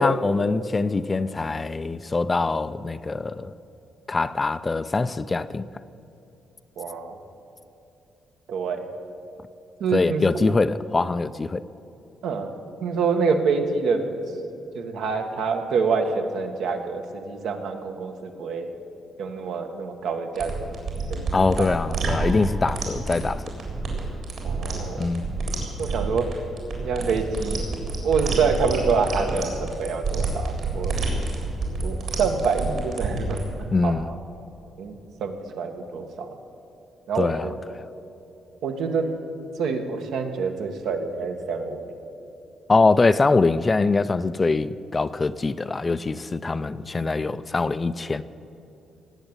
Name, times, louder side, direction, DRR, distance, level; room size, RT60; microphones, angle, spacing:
voice 1, 0.0-3.5 4.1-5.7 9.9-11.6 21.3-23.4 25.0-25.4 33.7-34.1 37.1-37.5 42.7-48.2, left 3 dB, 20° left, 0.3 m, -23 dB
voice 2, 6.8-7.2 8.5-8.9 9.8-10.2 12.2-12.5 12.8-14.0 14.7-18.7 19.2-20.8 21.1-21.7 24.4-25.1 25.8-26.3 26.8-27.6 28.0-30.9 31.8-33.4 33.8-34.2 34.8-36.3 37.1-37.5 38.6-39.1 39.6-41.9, right 5 dB, 75° right, 1.6 m, -26 dB
sound 1, 20.4-33.4, right 3 dB, 55° right, 3.6 m, -28 dB
18.0 x 8.1 x 8.9 m
cardioid pair, 170°, 0 cm